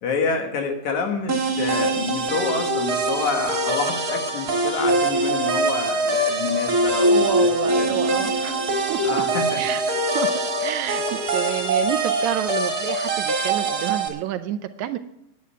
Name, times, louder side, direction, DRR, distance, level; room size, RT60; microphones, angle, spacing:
voice 1, 0.0-7.3 7.7-7.9 9.0-9.6, left 5 dB, 70° left, 4 dB, 2.9 m, -28 dB
sound 1, 1.3-14.1, right 2 dB, 35° right, 2.0 m, -23 dB
voice 2, 7.1-8.6 8.9-9.2 9.6-10.3 10.6-15.0, right 11 dB, 75° right, 10 dB, 1.9 m, -29 dB
10.5 x 8.9 x 8.3 m, 0.82 s
omnidirectional pair, 3.6 m